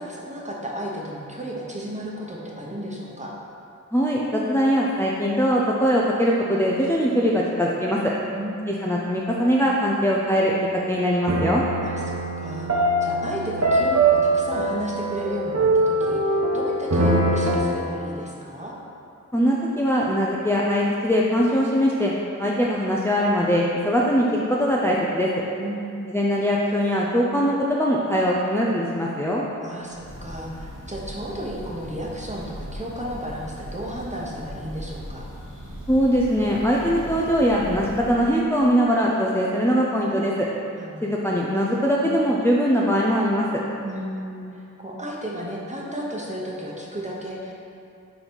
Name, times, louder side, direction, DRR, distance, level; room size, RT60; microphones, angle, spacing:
voice 1, 0.0-3.3 8.3-8.9 11.8-18.7 25.6-26.1 29.6-35.2 40.7-41.4 43.8-47.5, equal, 20° right, -4 dB, 1.0 m, -33 dB
voice 2, 3.9-8.1 8.7-10.5 10.9-11.6 19.3-22.1 22.4-25.4 26.1-29.4 35.9-40.5 41.0-43.5, equal, 10° left, -5 dB, 0.5 m, -21 dB
sound 1, 10.1-10.5 11.3-17.6, right 2 dB, 55° right, 0.8 m, -22 dB
Breathing / Bird, 29.8-38.4, equal, 80° right, 1.2 m, -39 dB
4.6 x 4.0 x 5.2 m, 2.6 s
wide cardioid pair, 40°, 32 cm